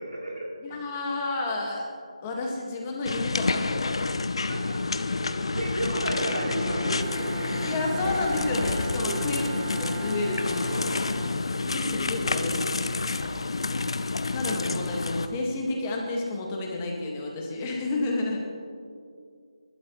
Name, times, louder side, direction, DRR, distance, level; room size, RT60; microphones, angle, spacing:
voice 1, 0.0-0.8 4.5-4.8 5.2-7.5 9.0-9.2 10.7-11.3 13.1-13.2, right 1 dB, 75° right, -3 dB, 3.5 m, -34 dB
voice 2, 0.6-1.9 2.2-4.1 7.6-9.5 9.8-10.8 11.6-13.0 14.1-18.4, left 2 dB, 15° left, -1 dB, 1.7 m, -31 dB
sound 1, 3.1-15.3, left 3 dB, 55° left, 0.7 m, -29 dB
Bowed string instrument, 5.7-11.9, right 6 dB, 15° right, 0.5 m, -40 dB
24.5 x 12.5 x 3.1 m, 2.3 s
figure-of-eight pair, 165°, 3 cm